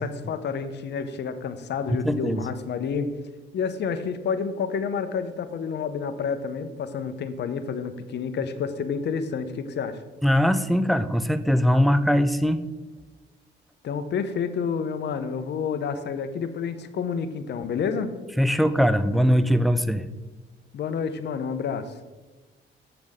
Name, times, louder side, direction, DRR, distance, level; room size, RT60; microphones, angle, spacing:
voice 1, 0.0-3.1 3.5-10.0 13.8-18.1 20.7-21.9, left 6 dB, 60° left, 11 dB, 0.8 m, -29 dB
voice 2, 1.9-2.5 10.2-12.6 18.4-20.1, equal, ahead, 12 dB, 0.4 m, -21 dB
7.8 x 7.2 x 3.6 m, 1.2 s
cardioid pair, 90°, 20 cm